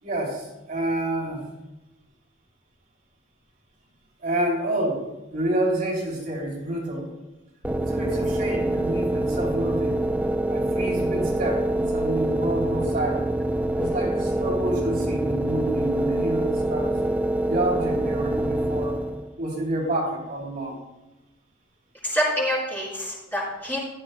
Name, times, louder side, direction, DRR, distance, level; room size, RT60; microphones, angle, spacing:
voice 1, 0.0-1.4 4.2-5.0 5.3-7.1 7.8-10.0 10.5-13.3 13.7-17.0 17.5-19.0 19.4-20.8, right 1 dB, 45° right, -3 dB, 3.2 m, -28 dB
sound 1, 7.6-19.3, right 1 dB, 10° right, 0.5 m, -25 dB
voice 2, 22.0-23.8, equal, 10° left, -6 dB, 4.4 m, -27 dB
16.5 x 12.0 x 2.2 m, 1.0 s
head